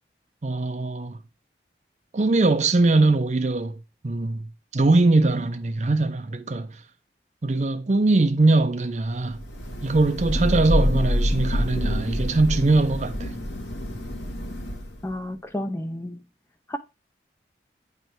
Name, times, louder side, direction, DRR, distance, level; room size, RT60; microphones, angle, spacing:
voice 1, 0.4-1.2 2.1-6.8 7.4-9.4 9.8-13.3, right 2 dB, 40° right, 0.5 m, -22 dB
Thunder / Rain, 9.3-15.1, equal, 90° left, 1.6 m, -27 dB
voice 2, 15.0-16.2 16.7-16.8, left 1 dB, 15° left, 0.4 m, -31 dB
9.0 x 3.4 x 4.3 m
head